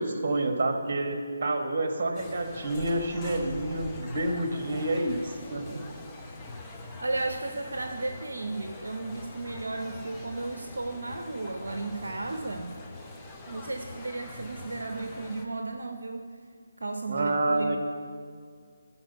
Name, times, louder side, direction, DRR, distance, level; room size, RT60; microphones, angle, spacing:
voice 1, 0.0-5.8 17.1-17.8, right 2 dB, 45° right, 5 dB, 1.2 m, -28 dB
sound 1, 2.1-15.5, left 2 dB, 10° left, 0.7 m, -45 dB
sound 2, 3.1-13.1 13.4-15.2, left 2 dB, 70° left, 1.6 m, -48 dB
voice 2, 7.0-12.8 13.5-16.4 16.8-17.8, right 2 dB, 70° right, 6 dB, 0.6 m, -34 dB
13.0 x 4.5 x 6.6 m, 2.1 s
figure-of-eight pair, 150°, 0 cm